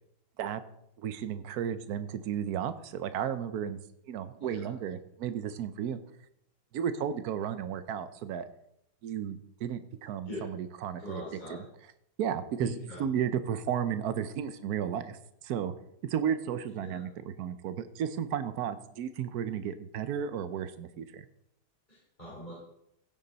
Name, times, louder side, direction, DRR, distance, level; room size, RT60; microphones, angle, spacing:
voice 1, 1.0-3.8 4.1-6.0 6.7-8.5 9.0-11.2 11.5-11.6 12.2-12.7 13.0-15.2 15.4-15.7 16.0-21.3, right 8 dB, 70° right, 11 dB, 0.9 m, -33 dB
voice 2, 4.4-4.7 10.2-10.4 11.0-11.6 12.6-13.0 16.8-17.0 21.9-22.6, left 1 dB, 20° left, -8 dB, 3.9 m, -42 dB
16.5 x 6.5 x 4.0 m, 0.76 s
omnidirectional pair, 2.3 m